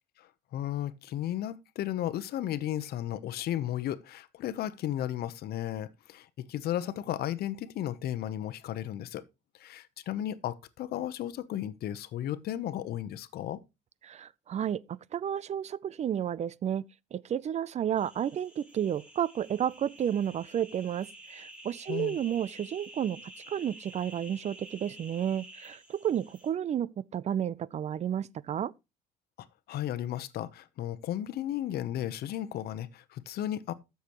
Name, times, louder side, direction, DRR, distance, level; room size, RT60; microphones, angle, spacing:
voice 1, 0.2-9.2 9.6-13.6 21.9-22.2 29.4-33.7, left 12 dB, 70° left, 0.9 m, -34 dB
voice 2, 14.0-14.8 15.1-16.8 17.1-23.2 23.5-28.7, right 9 dB, 40° right, 0.5 m, -31 dB
sound 1, 18.0-26.5, right 1 dB, 5° right, 4.6 m, -50 dB
13.0 x 6.9 x 3.0 m
cardioid pair, 110°, 17 cm